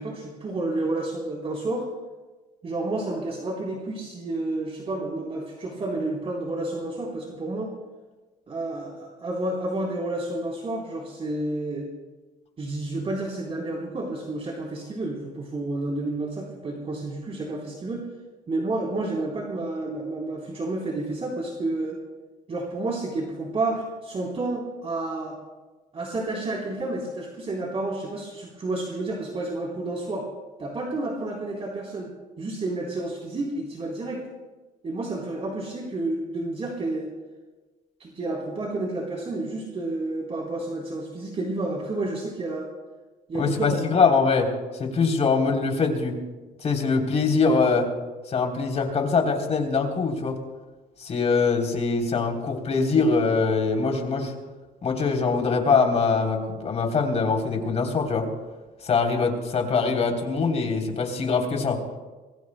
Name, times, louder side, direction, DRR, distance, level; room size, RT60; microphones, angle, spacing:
voice 1, 0.0-1.9 2.6-7.8 8.5-11.9 12.6-18.1 18.5-22.0 22.5-25.4 25.9-30.3 30.6-32.1 32.4-34.2 34.8-37.1 38.0-42.7 43.3-43.8, right 2 dB, 35° right, -2 dB, 3.6 m, -30 dB
voice 2, 43.4-44.5 44.8-46.1 46.6-47.9 48.3-50.4 51.0-54.3 54.8-58.3 58.8-62.0, left 4 dB, 40° left, 2 dB, 3.4 m, -23 dB
27.5 x 21.5 x 2.2 m, 1.3 s
cardioid pair, 110°, 17 cm